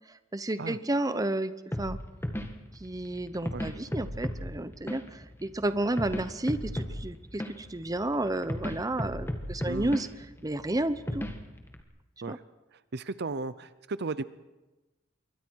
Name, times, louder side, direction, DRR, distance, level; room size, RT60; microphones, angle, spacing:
voice 1, 0.3-1.5 1.8-2.0 2.8-10.1 10.4-11.2 12.3-12.4, right 1 dB, 20° right, 12 dB, 0.8 m, -31 dB
sound 1, 1.7-11.8, equal, 10° left, 1.7 m, -37 dB
voice 2, 9.6-10.0 12.2-12.4 12.9-14.2, right 3 dB, 55° right, 15 dB, 0.6 m, -35 dB
26.5 x 23.0 x 4.7 m, 1.1 s
head